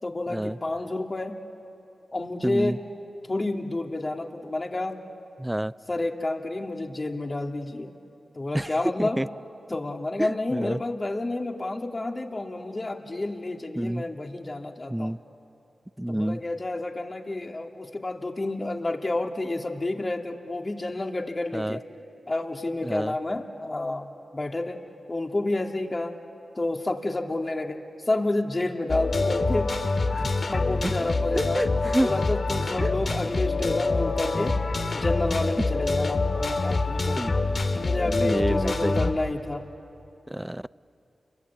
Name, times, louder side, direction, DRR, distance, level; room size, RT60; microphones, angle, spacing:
voice 1, 0.0-1.4 2.1-2.8 3.3-5.0 5.9-7.9 8.3-9.2 9.7-15.1 16.1-21.8 22.3-24.1 24.3-24.8 25.1-26.1 26.6-27.8 28.0-29.9 30.5-31.7 32.0-34.6 34.9-37.3 37.8-39.6, left 2 dB, 35° left, 3 dB, 2.5 m, -30 dB
voice 2, 2.4-2.8 5.4-5.7 8.5-8.7 9.0-9.3 10.2-10.8 13.8-14.0 14.9-15.2 16.0-16.4 21.5-21.8 22.8-23.1 30.1-30.3 31.4-32.1 32.8-32.9 37.2-37.3 38.1-39.1 40.3-40.7, right 1 dB, 10° right, 18 dB, 0.5 m, -28 dB
sound 1, 28.9-39.1, left 3 dB, 60° left, 2.0 m, -26 dB
29.5 x 22.0 x 8.5 m, 2.9 s
cardioid pair, 45°, 0 cm